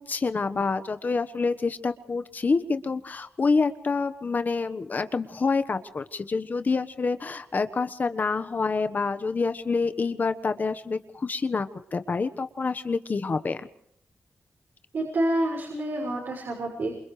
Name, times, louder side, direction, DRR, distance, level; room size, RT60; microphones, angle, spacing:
voice 1, 0.0-13.7, left 4 dB, 40° left, 10 dB, 1.3 m, -27 dB
voice 2, 14.9-17.0, right 1 dB, 65° right, -2 dB, 6.5 m, -28 dB
29.0 x 28.0 x 3.3 m, 0.73 s
wide cardioid pair, 125°, 4 cm